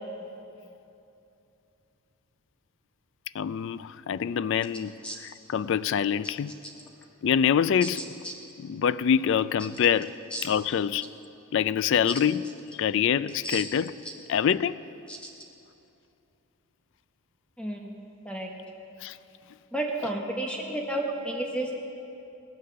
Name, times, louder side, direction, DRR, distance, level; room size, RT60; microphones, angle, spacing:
voice 1, 3.3-6.5 7.2-8.0 8.6-10.1 10.4-11.1 11.5-12.5 12.8-13.9 14.3-14.8 19.0-19.2, left 8 dB, 55° left, 0.3 m, -25 dB
voice 2, 17.6-18.0 18.2-18.5 19.7-21.7, right 1 dB, 5° left, 0.9 m, -31 dB
18.5 x 8.2 x 6.9 m
head